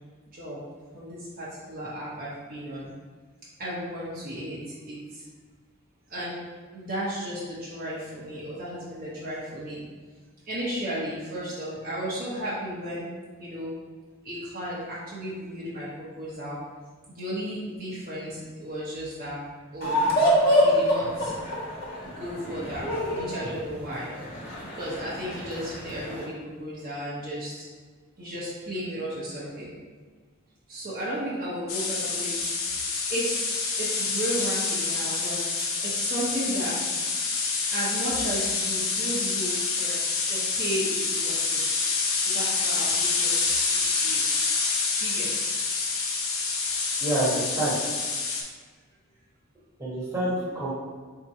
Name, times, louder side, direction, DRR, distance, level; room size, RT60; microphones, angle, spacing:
voice 1, 0.9-2.9 3.6-5.2 6.1-6.4 6.7-9.8 10.5-13.1 13.4-13.7 14.2-16.6 17.1-19.4 19.7-20.0 20.6-21.3 22.0-24.1 24.7-27.7 28.2-29.7 30.7-32.3 33.1-36.9 37.7-41.8 42.2-43.6 43.9-44.4 44.9-45.5 50.2-50.5, equal, 40° right, -8 dB, 0.9 m, -34 dB
sound 1, 19.8-26.2, equal, 45° left, 1.2 m, -26 dB
sound 2, 31.7-48.4, left 4 dB, 70° left, 0.8 m, -27 dB
voice 2, 47.0-47.7 49.8-50.7, right 1 dB, 15° right, -8 dB, 1.3 m, -27 dB
3.6 x 2.8 x 4.6 m, 1.5 s
head